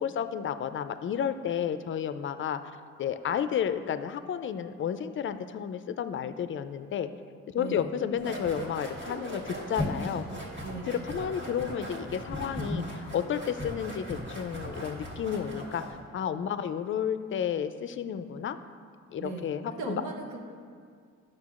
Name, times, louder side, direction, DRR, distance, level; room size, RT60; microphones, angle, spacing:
voice 1, 0.0-2.6 3.0-7.1 7.5-10.3 10.9-18.6 19.1-20.0, left 8 dB, 45° left, 11 dB, 0.4 m, -32 dB
voice 2, 7.6-7.9 10.6-11.0 19.2-20.4, right 3 dB, 75° right, 1 dB, 1.0 m, -38 dB
sound 1, 8.2-16.0, equal, 35° right, 1.6 m, -37 dB
10.0 x 6.3 x 2.4 m, 2.1 s
cardioid pair, 90°, 30 cm